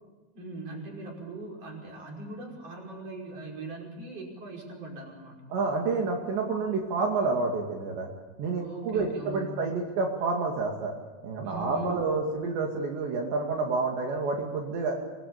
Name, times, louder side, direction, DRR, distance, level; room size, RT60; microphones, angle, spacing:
voice 1, 0.3-5.5 8.6-9.6 11.4-12.2, right 1 dB, 35° right, 0 dB, 6.3 m, -40 dB
voice 2, 5.5-8.1 8.4-10.9 11.2-15.0, right 4 dB, 75° right, 1 dB, 4.6 m, -29 dB
26.0 x 21.5 x 8.8 m, 1.3 s
omnidirectional pair, 5.2 m